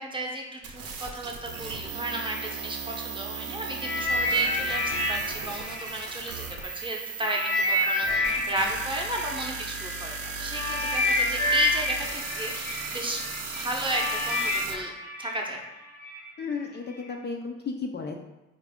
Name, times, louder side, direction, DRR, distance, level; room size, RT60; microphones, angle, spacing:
voice 1, 0.0-14.9 15.2-15.6, right 1 dB, 15° right, 0 dB, 0.7 m, -34 dB
sound 1, 0.6-14.7, right 5 dB, 50° right, 0.7 m, -37 dB
sound 2, 3.8-6.7 7.2-16.2 16.9-17.0, left 1 dB, 80° left, 0.9 m, -29 dB
voice 2, 16.4-18.2, left 4 dB, 35° left, 2 dB, 0.4 m, -33 dB
4.0 x 2.5 x 3.5 m, 0.97 s
cardioid pair, 90°, 30 cm